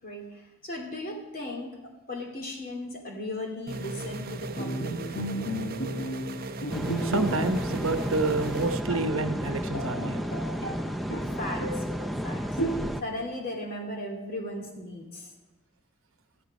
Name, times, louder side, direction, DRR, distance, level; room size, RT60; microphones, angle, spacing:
voice 1, 0.0-1.7 2.1-5.2 11.4-12.6 13.0-15.3, left 1 dB, 40° left, 0 dB, 2.6 m, -37 dB
sound 1, 3.7-8.8, right 2 dB, 40° right, 0.6 m, -37 dB
Bowed string instrument, 4.6-7.6 7.9-8.1 8.6-8.7 8.9-10.8 11.1-11.9 12.6-13.2, right 1 dB, 70° left, 2.0 m, -33 dB
sound 2, 6.7-13.0, equal, ahead, 0.5 m, -32 dB
voice 2, 7.0-10.2, right 2 dB, 65° right, 8 dB, 1.0 m, -28 dB
13.5 x 11.0 x 5.4 m, 1.0 s
head